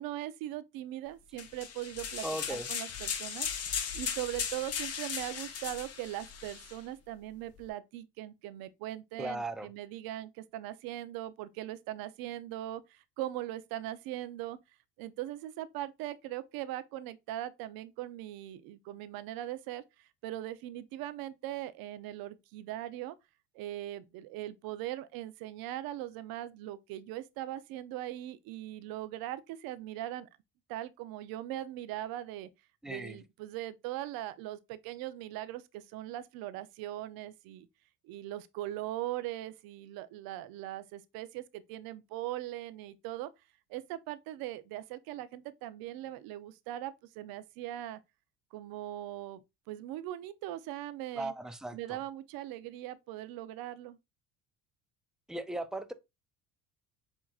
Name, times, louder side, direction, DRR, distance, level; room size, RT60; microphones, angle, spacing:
voice 1, 0.0-3.5 3.9-14.6 15.0-23.2 23.5-30.3 30.7-32.5 32.9-37.7 38.0-43.3 43.7-48.0 48.5-51.3 51.7-54.0, right 14 dB, 70° right, 0.7 m, -40 dB
sound 1, 1.4-6.8, left 7 dB, 40° left, 1.0 m, -37 dB
voice 2, 2.2-2.7 9.2-9.7 32.8-33.2 51.2-52.0 55.3-55.9, right 1 dB, ahead, 0.4 m, -37 dB
7.2 x 2.9 x 2.4 m
supercardioid pair, 105°, 36 cm